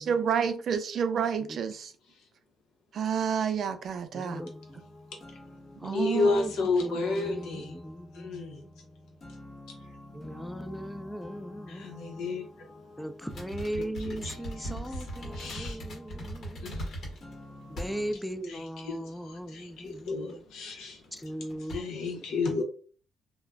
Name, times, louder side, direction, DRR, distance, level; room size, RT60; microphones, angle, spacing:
voice 1, 0.0-1.9 2.9-4.4 5.8-6.3 14.7-14.8, right 7 dB, 65° right, 0.4 m, -29 dB
voice 2, 4.1-4.8 5.8-8.7 10.1-11.9 13.0-16.8 17.7-20.4 21.1-21.8, equal, ahead, 0.3 m, -38 dB
sound 1, 4.3-18.2, left 1 dB, 35° left, 0.9 m, -48 dB
voice 3, 5.9-7.8 8.1-8.6 11.7-12.7 14.1-15.1 15.3-15.8 16.6-17.2 17.6-17.8 18.5-21.3 21.7-22.6, left 3 dB, 85° left, 0.8 m, -32 dB
sound 2, 13.3-17.3 17.8-18.3 18.6-18.7 19.8-20.3 21.0-21.2 21.5-21.8, right 1 dB, 60° left, 1.3 m, -39 dB
2.3 x 2.2 x 3.3 m
cardioid pair, 70°, 0 cm